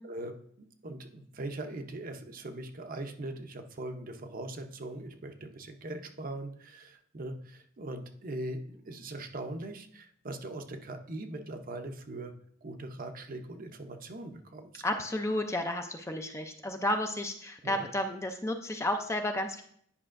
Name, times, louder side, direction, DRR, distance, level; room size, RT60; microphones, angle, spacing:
voice 1, 0.0-12.3 12.6-14.8 17.6-17.8, right 2 dB, 45° right, 6 dB, 0.7 m, -41 dB
voice 2, 14.8-19.6, left 1 dB, 15° left, 5 dB, 0.4 m, -32 dB
9.7 x 5.4 x 2.5 m, 0.63 s
head